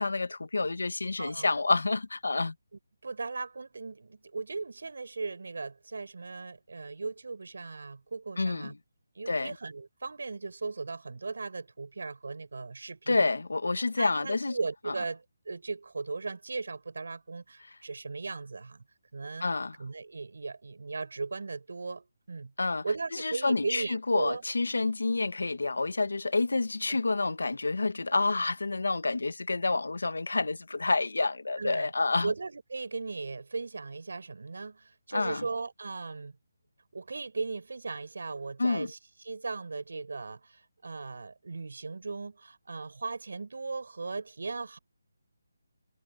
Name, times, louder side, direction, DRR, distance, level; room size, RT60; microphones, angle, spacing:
voice 1, 0.0-2.5 8.4-8.7 9.3-9.5 13.1-14.6 19.4-19.7 22.6-22.8 23.2-32.3 35.1-35.5 38.6-38.9, left 3 dB, 90° left, 1.5 m, -28 dB
voice 2, 3.0-8.7 9.2-13.3 14.0-18.8 19.1-19.5 19.8-22.5 22.8-24.4 31.6-31.9 32.2-36.4 36.9-39.0 39.2-44.8, right 4 dB, 70° right, 7.2 m, -37 dB
hypercardioid pair, 170°, 0 cm